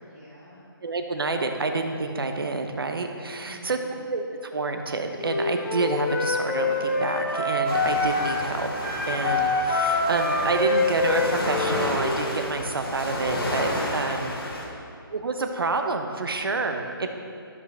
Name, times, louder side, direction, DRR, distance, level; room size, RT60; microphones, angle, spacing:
voice 1, 0.0-0.6 3.4-4.0 14.1-14.8 17.0-17.1, right 1 dB, 5° left, -13 dB, 0.4 m, -46 dB
voice 2, 0.8-3.8 4.1-14.3 15.1-17.1, right 3 dB, 70° right, 5 dB, 0.9 m, -28 dB
Wind instrument woodwind instrument, 5.1-8.4 8.8-12.2, left 2 dB, 25° left, 1.2 m, -25 dB
sound 1, 7.6-14.7, left 1 dB, 75° left, 1.8 m, -31 dB
13.0 x 5.4 x 3.3 m, 2.5 s
hypercardioid pair, 175°, 13 cm